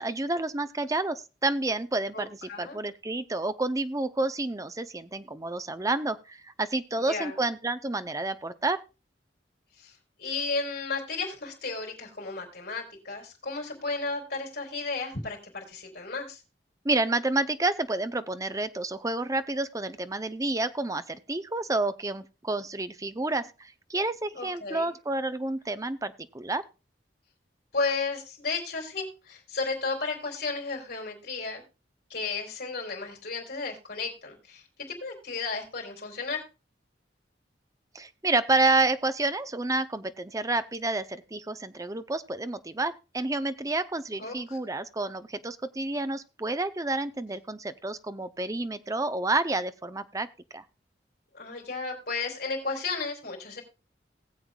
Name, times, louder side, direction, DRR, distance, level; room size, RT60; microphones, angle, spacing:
voice 1, 0.0-8.8 16.8-26.6 37.9-50.3 50.5-50.6, right 2 dB, 20° right, 12 dB, 0.7 m, -29 dB
voice 2, 2.1-2.8 7.1-7.3 9.8-16.4 24.3-24.9 27.7-31.6 32.1-36.5 44.2-44.6 51.3-53.6, left 4 dB, 60° left, 0 dB, 4.0 m, -33 dB
19.5 x 7.8 x 2.4 m, 0.29 s
head